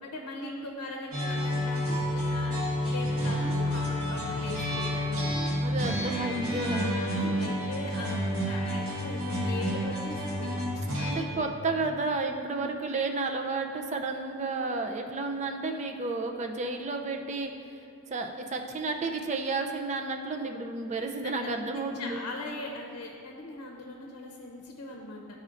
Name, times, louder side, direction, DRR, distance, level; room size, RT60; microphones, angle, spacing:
voice 1, 0.0-5.4 6.6-8.2 8.5-10.5 11.0-11.3 12.3-12.8 21.0-25.2, left 2 dB, 90° left, 0 dB, 0.7 m, -40 dB
sound 1, 1.1-11.1, equal, 80° right, 1.5 m, -30 dB
voice 2, 5.6-7.0 11.1-17.5 18.1-22.2, right 3 dB, 30° right, 4 dB, 0.4 m, -32 dB
12.0 x 4.2 x 2.5 m, 2.6 s
head